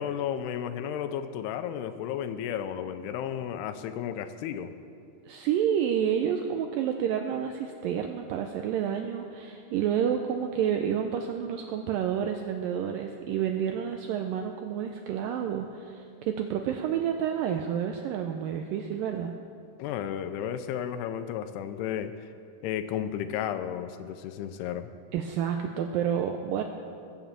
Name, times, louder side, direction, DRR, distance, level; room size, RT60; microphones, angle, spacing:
voice 1, 0.0-4.7 19.8-22.3 22.6-24.9, left 9 dB, 80° left, 10 dB, 2.6 m, -33 dB
voice 2, 5.3-19.3 25.1-26.6, right 8 dB, 85° right, 5 dB, 2.0 m, -29 dB
21.0 x 7.2 x 7.3 m, 2.4 s
omnidirectional pair, 4.7 m